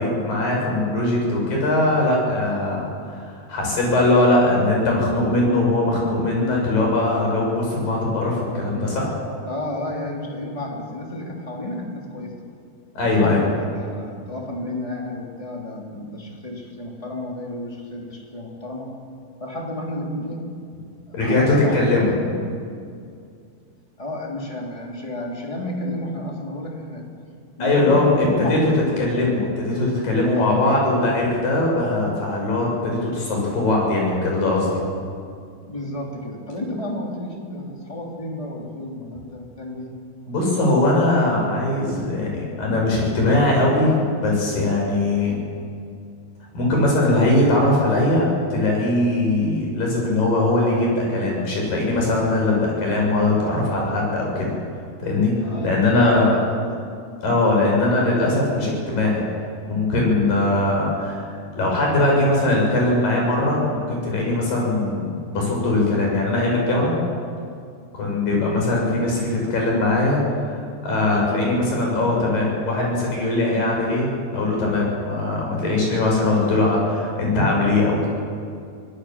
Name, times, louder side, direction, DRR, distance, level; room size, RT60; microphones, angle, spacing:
voice 1, 0.0-9.1 12.9-13.4 21.1-22.1 27.6-28.6 29.0-34.8 40.3-45.4 46.5-54.5 55.0-55.3 55.6-56.3 57.2-59.3 59.6-61.2 61.6-67.0 67.9-70.2 70.5-78.1, left 2 dB, 55° left, -1 dB, 8.0 m, -20 dB
voice 2, 9.4-12.3 13.1-18.9 19.4-20.5 21.1-22.3 24.0-27.0 27.6-28.9 30.3-30.8 35.7-39.9 55.4-56.9 57.6-57.8, left 1 dB, 10° left, -1 dB, 2.8 m, -31 dB
24.5 x 18.5 x 7.4 m, 2.3 s
omnidirectional pair, 4.7 m